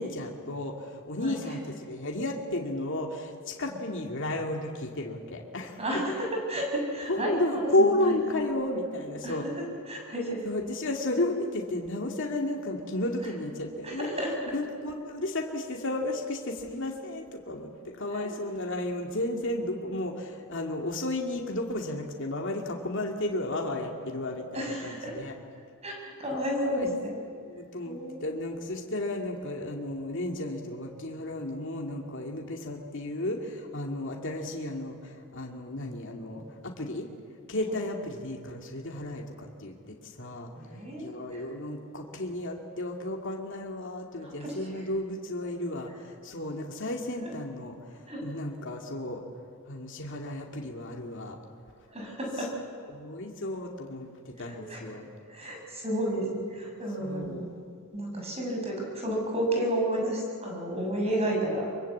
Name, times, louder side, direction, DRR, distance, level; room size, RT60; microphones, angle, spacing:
voice 1, 0.0-5.8 7.1-9.5 10.4-14.1 14.5-25.3 26.3-26.4 26.8-26.9 27.4-37.1 37.5-49.2 49.7-51.4 52.9-55.1 57.0-57.6, left 1 dB, 60° left, 1 dB, 2.4 m, -33 dB
voice 2, 1.2-1.6 3.7-3.8 5.8-8.4 9.2-10.5 13.8-14.3 18.1-18.3 24.5-25.1 25.8-27.2 27.8-28.2 36.4-36.5 37.7-37.8 40.6-41.4 44.2-44.8 48.1-48.2 51.9-52.5 54.5-54.8 55.3-57.5 57.9-61.7, right 1 dB, 30° right, 0 dB, 6.7 m, -32 dB
24.5 x 24.0 x 8.5 m, 2.3 s
head